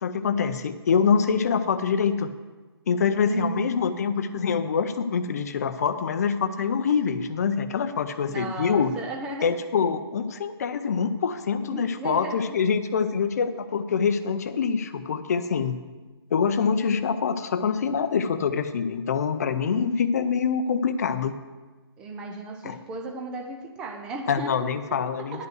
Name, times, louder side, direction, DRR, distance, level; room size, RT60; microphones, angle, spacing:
voice 1, 0.0-2.3 2.9-8.9 9.4-15.8 16.3-21.3 22.6-22.8 24.3-25.5, left 6 dB, 35° left, 10 dB, 0.6 m, -25 dB
voice 2, 3.3-4.3 8.3-9.6 11.6-12.5 22.0-25.5, right 3 dB, 5° right, 3 dB, 0.5 m, -35 dB
10.5 x 5.4 x 7.9 m, 1.3 s
hypercardioid pair, 165°, 14 cm